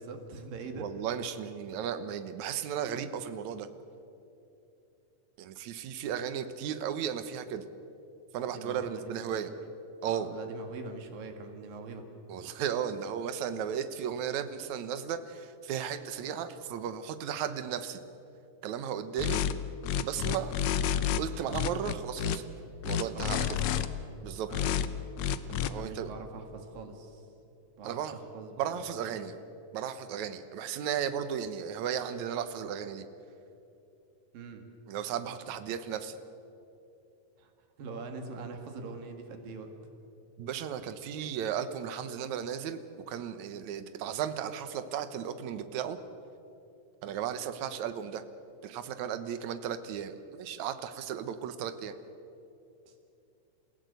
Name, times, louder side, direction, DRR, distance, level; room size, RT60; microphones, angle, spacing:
voice 1, 0.0-0.9 8.5-9.5 10.1-12.0 23.1-23.9 24.5-24.7 25.7-27.3 27.8-29.2 34.3-34.6 37.4-37.5 37.8-39.7 52.9-53.0, right 4 dB, 85° right, 5 dB, 3.8 m, -43 dB
voice 2, 0.7-3.7 5.4-7.6 8.3-9.5 10.0-10.3 12.3-18.0 18.6-19.4 20.0-20.5 21.2-22.4 22.8-23.6 24.2-24.5 25.5-26.1 27.8-28.1 28.6-29.3 29.7-33.1 34.9-36.2 40.4-46.0 47.0-48.2 48.6-51.9, right 8 dB, 65° right, 11 dB, 2.2 m, -35 dB
sound 1, 19.2-19.5 19.8-21.2 21.5-22.4 22.8-23.9 24.5-24.9 25.2-25.7, left 9 dB, 75° left, 1.7 m, -29 dB
29.0 x 16.5 x 8.2 m, 2.7 s
omnidirectional pair, 3.9 m